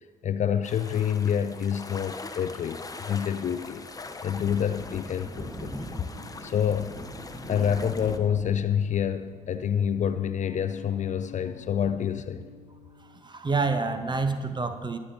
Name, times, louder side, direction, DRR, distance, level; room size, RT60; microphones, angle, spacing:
voice 1, 0.2-3.9 4.2-5.7 6.4-6.9 7.5-12.4, left 8 dB, 40° left, 11 dB, 0.5 m, -27 dB
sound 1, 0.6-8.2, left 3 dB, 20° left, 0.8 m, -43 dB
Thunder, 3.0-12.1, equal, ahead, 1.4 m, -43 dB
sound 2, 4.8-13.3, left 5 dB, 90° left, 0.6 m, -50 dB
voice 2, 13.2-15.0, right 4 dB, 25° right, 9 dB, 1.0 m, -27 dB
21.0 x 7.5 x 2.8 m, 1.5 s
figure-of-eight pair, 45°, 19 cm